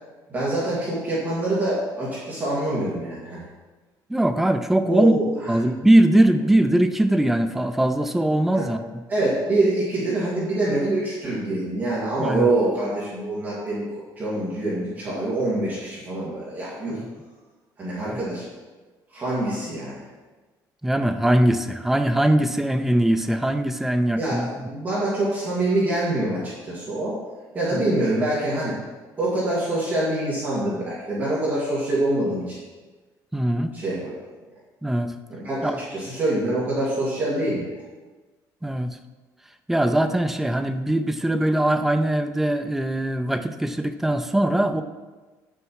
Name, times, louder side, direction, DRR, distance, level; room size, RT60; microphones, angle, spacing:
voice 1, 0.3-3.4 4.8-5.6 8.5-8.7 9.1-13.9 14.2-17.0 17.8-18.4 19.1-20.0 24.2-27.2 27.5-28.7 29.2-32.6 33.7-34.2 35.3-37.8, right 2 dB, 25° right, -8 dB, 2.2 m, -25 dB
voice 2, 4.1-5.2 5.5-8.8 12.2-12.5 16.9-17.1 18.1-18.2 20.8-24.7 27.7-27.8 33.3-33.8 34.8-35.1 35.6-35.8 38.6-39.0 39.7-44.8, right 1 dB, 5° right, 8 dB, 0.4 m, -21 dB
9.4 x 6.4 x 4.7 m, 1.3 s
cardioid pair, 180°, 7 cm